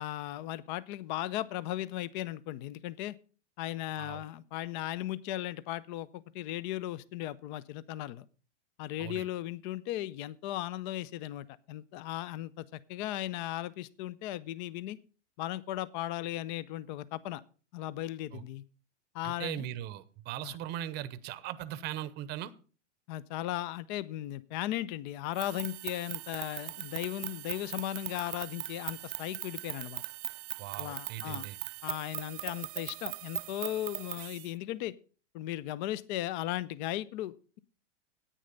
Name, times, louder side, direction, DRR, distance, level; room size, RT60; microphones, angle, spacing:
voice 1, 0.0-3.2 3.6-8.2 8.8-15.0 15.4-17.4 17.7-18.6 19.1-19.6 20.4-20.5 23.1-30.0 30.8-31.5 31.8-34.9 35.3-37.6, left 14 dB, 40° left, 20 dB, 0.6 m, -37 dB
voice 2, 19.2-22.5 30.6-31.6, right 12 dB, 30° right, 16 dB, 0.8 m, -39 dB
sound 1, 25.3-34.5, right 19 dB, 45° right, 0.4 m, -40 dB
10.0 x 9.0 x 5.3 m, 0.37 s
hypercardioid pair, 125°, 36 cm